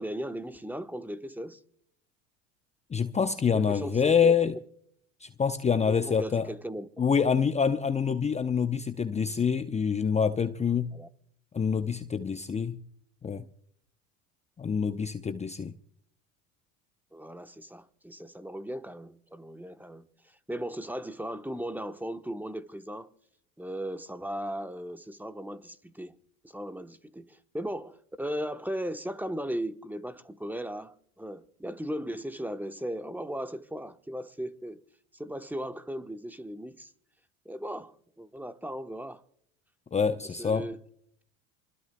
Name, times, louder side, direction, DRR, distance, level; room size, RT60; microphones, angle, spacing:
voice 1, 0.0-1.6 3.5-4.3 5.8-6.9 10.9-11.1 17.1-20.0 20.5-23.1 23.6-26.2 26.4-34.8 35.1-36.9 37.4-39.2 40.4-40.8, equal, 5° right, 1.0 m, -37 dB
voice 2, 2.9-4.5 5.2-6.5 7.0-10.9 11.5-12.8 13.2-13.4 14.6-15.7 39.9-40.7, left 6 dB, 20° left, 0.7 m, -26 dB
27.0 x 20.5 x 2.2 m
hypercardioid pair, 85°, 36 cm